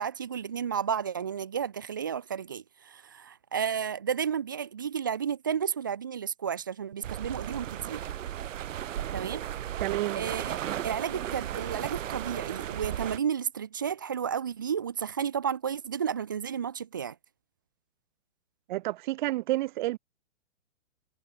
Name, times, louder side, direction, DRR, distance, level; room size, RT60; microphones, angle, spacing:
voice 1, 0.0-8.0 9.1-9.4 10.1-17.2, right 7 dB, 20° right, 0.4 m, -32 dB
sound 1, 7.0-13.2, right 11 dB, 75° right, 0.9 m, -35 dB
voice 2, 9.8-10.2 18.7-20.0, right 17 dB, 35° right, 1.8 m, -29 dB
hypercardioid pair, 155°, 39 cm